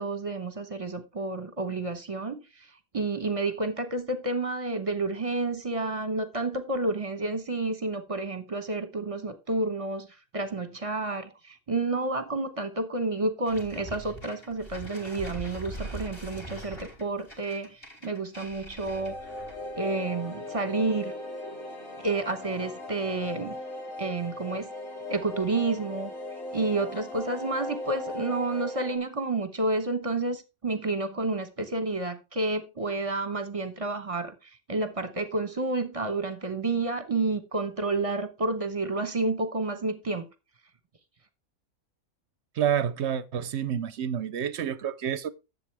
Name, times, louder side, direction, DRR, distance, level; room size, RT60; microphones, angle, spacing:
voice 1, 0.0-10.1 10.3-19.2 19.8-21.1 22.0-23.6 24.0-24.7 25.1-26.1 26.5-40.3, right 2 dB, 25° right, 1.0 m, -30 dB
sound 1, 13.5-19.7, right 2 dB, 40° left, 3.0 m, -42 dB
sound 2, 18.8-29.0, left 1 dB, 70° left, 2.4 m, -38 dB
voice 2, 42.6-45.3, right 9 dB, 60° right, 0.8 m, -28 dB
10.5 x 7.7 x 3.3 m
omnidirectional pair, 1.5 m